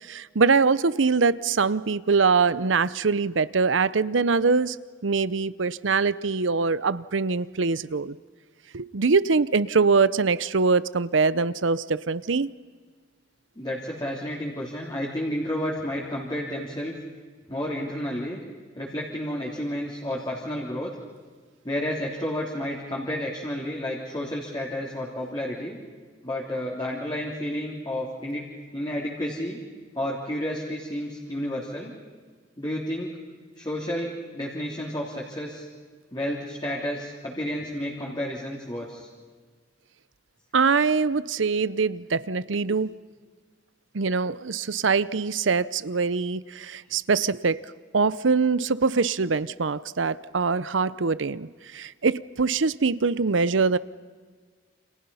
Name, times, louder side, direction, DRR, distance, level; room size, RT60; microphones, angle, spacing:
voice 1, 0.0-4.8 5.0-8.2 8.7-12.5 40.5-42.9 43.9-47.6 47.9-53.8, right 4 dB, 90° right, 0.7 m, -23 dB
voice 2, 13.5-16.9 17.5-18.4 18.7-20.9 21.6-25.8 26.2-29.6 29.9-31.9 32.6-33.1 33.5-35.7 36.1-39.1, left 1 dB, 25° left, 3.4 m, -31 dB
29.5 x 27.5 x 5.6 m
head